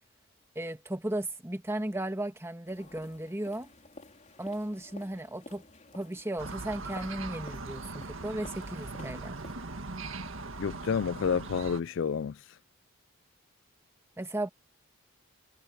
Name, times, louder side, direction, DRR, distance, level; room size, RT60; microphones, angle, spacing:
voice 1, 0.5-3.7 4.4-5.6 5.9-9.4 14.2-14.5, right 1 dB, 10° right, 1.4 m, -35 dB
sound 1, 2.6-9.5, left 2 dB, 35° left, 4.3 m, -52 dB
sound 2, 6.4-11.8, right 3 dB, 70° right, 1.9 m, -40 dB
voice 2, 10.6-12.4, left 6 dB, 60° left, 0.3 m, -29 dB
head